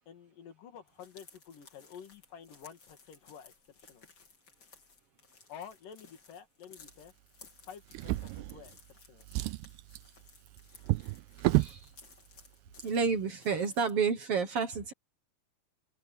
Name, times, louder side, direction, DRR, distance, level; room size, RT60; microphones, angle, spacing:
voice 1, 0.1-4.1 5.5-7.1 7.6-9.3, left 8 dB, 60° left, 3.7 m, -50 dB
sound 1, 0.9-14.1, left 4 dB, 30° left, 3.1 m, -59 dB
Drawer open or close, 7.9-8.9 9.2-11.8 12.7-12.9 13.2-13.3, right 19 dB, 90° right, 2.7 m, -32 dB
voice 2, 11.6-11.9 12.8-14.9, right 5 dB, 60° right, 1.5 m, -30 dB
open air
omnidirectional pair, 4.6 m